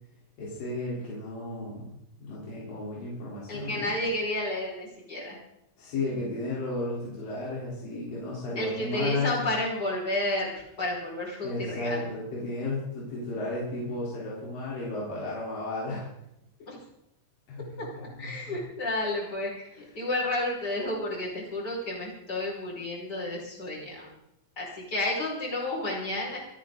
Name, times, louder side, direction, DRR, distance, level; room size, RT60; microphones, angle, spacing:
voice 1, 0.4-3.9 5.8-9.5 11.4-16.1 17.5-18.5 19.7-19.9, left 2 dB, 70° left, -6 dB, 5.5 m, -34 dB
voice 2, 3.5-5.4 8.6-12.1 16.7-16.8 17.8-19.6 19.9-24.1 24.6-26.4, left 1 dB, 25° left, -4 dB, 5.7 m, -31 dB
27.0 x 10.0 x 3.9 m, 0.83 s
omnidirectional pair, 4.2 m